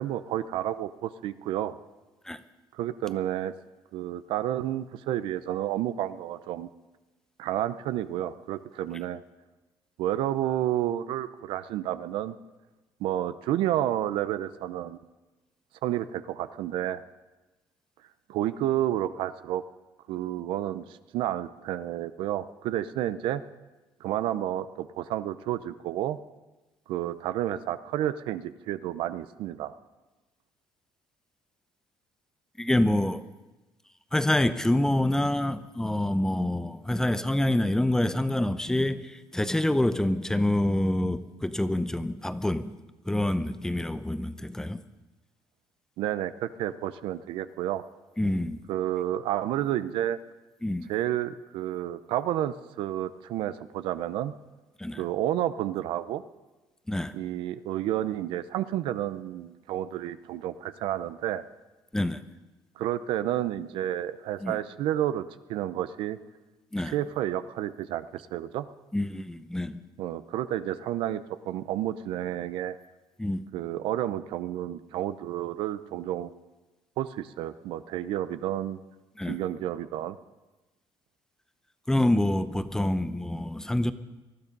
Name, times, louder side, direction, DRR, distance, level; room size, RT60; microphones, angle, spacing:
voice 1, 0.0-1.8 2.7-3.5 3.9-6.7 7.4-9.2 10.0-12.4 13.0-15.0 15.8-17.0 18.3-19.6 20.1-20.8 21.1-23.4 24.0-26.2 26.9-29.7 46.0-47.8 48.7-50.2 50.9-54.3 55.0-56.2 57.1-61.4 62.8-66.2 66.8-68.7 70.0-72.8 73.5-76.3 77.0-78.8 79.2-80.2, right 12 dB, 85° right, 13 dB, 0.7 m, -30 dB
voice 2, 32.6-33.2 34.1-42.7 43.1-44.8 48.2-48.6 50.6-50.9 54.8-55.1 56.9-57.1 61.9-62.3 64.4-64.6 66.7-66.9 68.9-69.8 73.2-73.4 79.2-79.4 81.9-83.9, left 1 dB, 5° left, 12 dB, 0.7 m, -26 dB
19.5 x 12.5 x 5.4 m, 1.1 s
cardioid pair, 120°, 9 cm